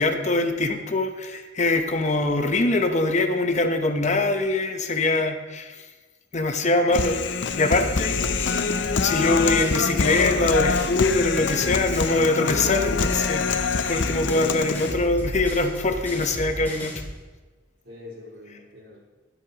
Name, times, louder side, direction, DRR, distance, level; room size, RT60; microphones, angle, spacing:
voice 1, 0.0-5.9 6.3-7.2 7.6-8.2 9.0-17.0, left 2 dB, 40° left, 6 dB, 0.9 m, -23 dB
Human voice, 6.9-14.9, left 5 dB, 75° left, 0.6 m, -25 dB
sound 1, 7.8-12.2 12.5-17.1, equal, 10° left, 3.3 m, -34 dB
voice 2, 17.8-19.0, left 2 dB, 80° right, -5 dB, 4.5 m, -44 dB
21.0 x 8.2 x 3.0 m, 1.3 s
head